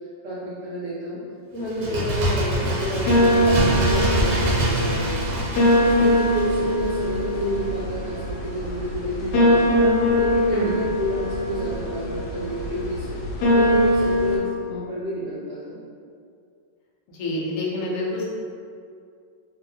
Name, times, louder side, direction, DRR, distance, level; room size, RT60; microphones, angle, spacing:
voice 1, 0.2-1.2 1.5-5.4 5.8-9.8 10.1-13.2 13.5-15.8, right 1 dB, 70° right, -9 dB, 0.7 m, -30 dB
Bird, 1.6-7.2 7.5-7.6, right 1 dB, 85° right, 1.3 m, -25 dB
sound 1, 3.0-14.4, left 1 dB, 90° left, 1.3 m, -22 dB
voice 2, 17.2-18.2, left 1 dB, 65° left, -4 dB, 0.8 m, -27 dB
2.9 x 2.6 x 2.7 m, 2.3 s
omnidirectional pair, 2.0 m